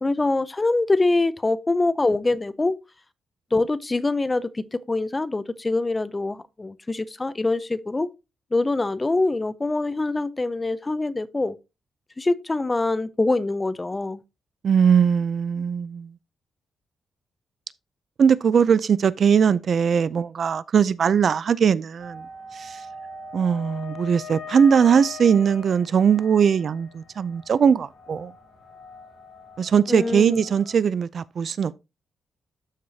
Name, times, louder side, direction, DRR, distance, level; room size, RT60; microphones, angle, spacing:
voice 1, 0.0-2.8 3.5-8.1 8.5-11.6 12.2-14.2 29.9-30.4, left 2 dB, 15° left, 0.5 m, -24 dB
voice 2, 14.6-16.1 18.2-22.3 22.5-22.8 23.3-28.3 29.6-31.7, right 7 dB, 50° right, 0.4 m, -20 dB
sound 1, 22.0-30.7, left 3 dB, 60° left, 2.9 m, -42 dB
13.0 x 4.8 x 2.7 m
wide cardioid pair, 145°, 0 cm